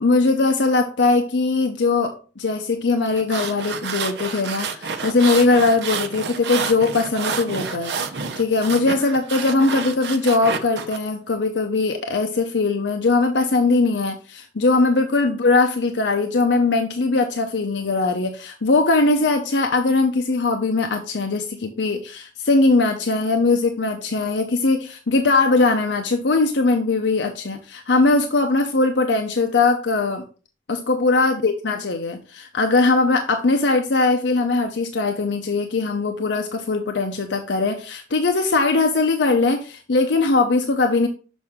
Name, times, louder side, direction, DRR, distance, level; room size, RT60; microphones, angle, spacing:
voice 1, 0.0-7.9 8.4-30.2 30.7-41.1, left 3 dB, 80° left, 5 dB, 0.7 m, -20 dB
sound 1, 3.1-11.0, right 5 dB, 70° right, 0.8 m, -29 dB
6.2 x 5.9 x 3.6 m, 0.37 s
head